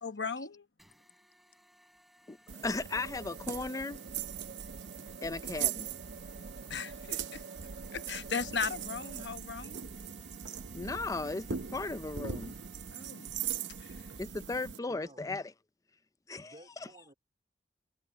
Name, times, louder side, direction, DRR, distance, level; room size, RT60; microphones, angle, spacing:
voice 1, 0.0-0.7 6.7-7.4 7.9-9.8 12.9-13.3 13.8-14.0, left 6 dB, 75° left, 1.1 m, -37 dB
sound 1, 0.8-14.2, equal, ahead, 6.6 m, -64 dB
voice 2, 2.3-4.0 5.2-5.9 10.7-12.5 14.2-15.4 16.3-16.5, left 3 dB, 20° left, 0.5 m, -36 dB
sound 2, 2.5-14.8, right 8 dB, 85° right, 0.7 m, -40 dB
sound 3, 2.8-9.3, right 5 dB, 65° right, 2.0 m, -51 dB
voice 3, 14.8-15.3 16.4-17.1, right 1 dB, 35° right, 3.5 m, -55 dB
head